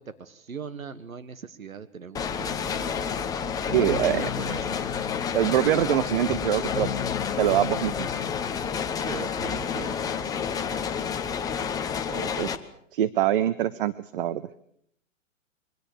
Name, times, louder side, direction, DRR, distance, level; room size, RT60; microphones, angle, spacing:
voice 1, 0.0-2.9 3.7-4.8 8.7-10.0 10.2-10.5, right 6 dB, 90° right, 12 dB, 1.7 m, -39 dB
sound 1, 2.1-12.6, left 7 dB, 10° left, 0.9 m, -30 dB
sound 2, 2.5-8.7, left 10 dB, 60° left, 1.2 m, -37 dB
voice 2, 3.7-4.2 5.3-6.9 7.4-8.1 12.1-12.5 12.9-14.4, right 11 dB, 40° right, 17 dB, 0.9 m, -24 dB
24.0 x 18.0 x 6.9 m, 0.68 s
hypercardioid pair, 140°, 40 cm